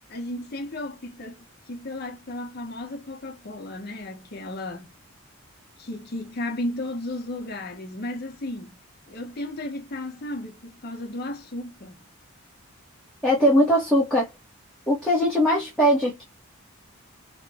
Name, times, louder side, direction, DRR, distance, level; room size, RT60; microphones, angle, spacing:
voice 1, 0.1-4.9 5.8-8.7 9.1-12.0, left 1 dB, 45° left, 0.8 m, -34 dB
voice 2, 13.2-14.3 14.9-16.2, equal, 5° left, 0.8 m, -20 dB
3.0 x 2.2 x 3.3 m
head